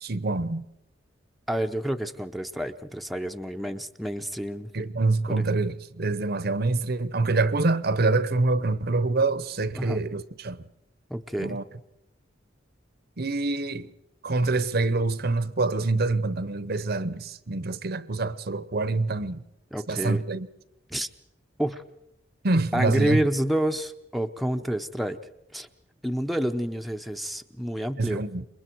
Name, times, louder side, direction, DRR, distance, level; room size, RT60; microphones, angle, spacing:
voice 1, 0.0-0.7 4.7-10.6 11.4-11.6 13.2-13.9 14.2-19.4 19.9-20.5 22.4-23.2 28.0-28.5, right 3 dB, 55° right, 0.9 m, -26 dB
voice 2, 1.5-4.7 5.3-5.4 9.7-10.0 11.1-11.6 19.7-20.2 20.9-21.1 21.6-21.8 22.7-25.2 25.5-25.7 26.0-28.2, right 1 dB, ahead, 0.8 m, -28 dB
28.0 x 22.5 x 4.6 m
head